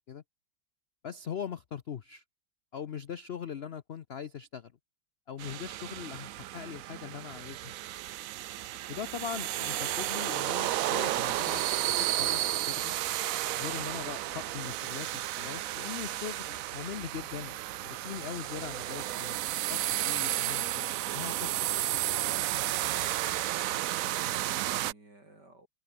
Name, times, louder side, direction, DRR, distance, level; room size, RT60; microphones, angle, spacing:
voice 1, 1.0-2.2 2.7-4.7 5.3-7.7 8.9-12.9 13.6-17.6 17.8-19.4 19.7-21.6, left 8 dB, 75° left, 0.5 m, -41 dB
sound 1, 5.4-24.9, right 14 dB, 85° right, 0.7 m, -32 dB
voice 2, 23.6-25.7, right 2 dB, 60° right, 8.1 m, -55 dB
omnidirectional pair, 2.0 m